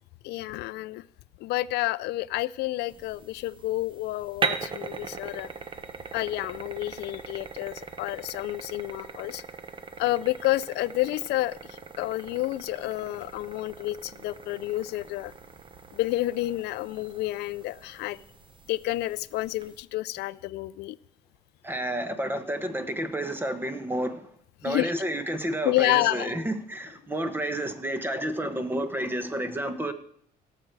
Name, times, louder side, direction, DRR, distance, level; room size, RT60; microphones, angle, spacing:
voice 1, 0.2-1.0 1.4-5.5 6.1-9.4 10.0-15.3 15.9-18.2 18.7-21.0 24.6-24.9 25.6-26.3, left 17 dB, 80° left, 19 dB, 0.4 m, -29 dB
The Speeding Cup, 2.9-19.8, right 5 dB, 30° right, 0.9 m, -40 dB
voice 2, 21.6-24.3 24.6-29.9, right 1 dB, 10° right, 9 dB, 1.2 m, -30 dB
17.5 x 6.8 x 4.7 m, 0.64 s
cardioid pair, 110°, 17 cm